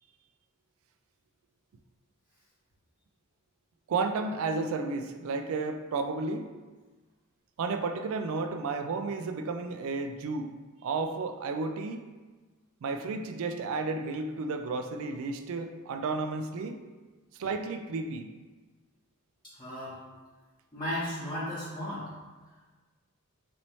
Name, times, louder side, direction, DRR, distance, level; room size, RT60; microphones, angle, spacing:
voice 1, 3.9-6.5 7.6-10.5 10.8-12.1 12.8-16.8 17.4-18.3, right 3 dB, 65° right, 6 dB, 0.3 m, -32 dB
voice 2, 19.6-20.0 20.7-22.0, left 1 dB, 20° left, -11 dB, 0.8 m, -34 dB
4.2 x 2.7 x 3.0 m, 1.3 s
head